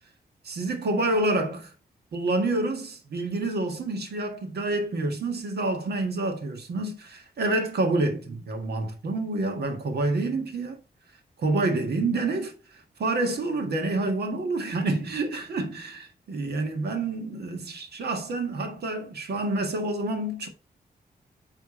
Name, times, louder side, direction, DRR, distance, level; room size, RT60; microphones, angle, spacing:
voice 1, 0.4-1.7 2.1-10.8 11.4-20.5, right 2 dB, 85° right, 1.6 m, -28 dB
9.7 x 3.5 x 4.2 m
wide cardioid pair, 155°, 16 cm